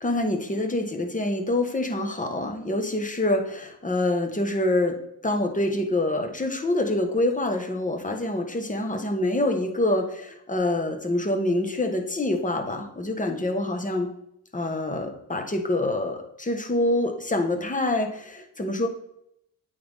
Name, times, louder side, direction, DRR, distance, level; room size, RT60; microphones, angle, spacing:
voice 1, 0.0-5.0 5.2-14.1 14.5-18.9, left 1 dB, 20° left, 4 dB, 1.4 m, -26 dB
8.5 x 3.6 x 3.6 m, 0.77 s
supercardioid pair, 50°, 43 cm